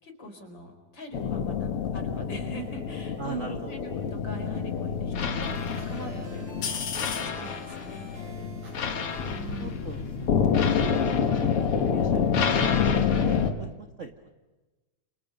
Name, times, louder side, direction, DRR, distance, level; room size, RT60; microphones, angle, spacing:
voice 1, 0.0-8.5 9.3-9.9, right 1 dB, 35° left, 5 dB, 5.0 m, -43 dB
sound 1, 1.1-13.5, left 6 dB, 50° left, 2.4 m, -27 dB
voice 2, 3.2-3.7 8.8-12.2 12.5-14.1, right 5 dB, 35° right, 5 dB, 1.2 m, -41 dB
sound 2, 5.5-11.5, right 1 dB, 65° right, 8.9 m, -49 dB
30.0 x 29.0 x 5.5 m, 1.2 s
omnidirectional pair, 3.5 m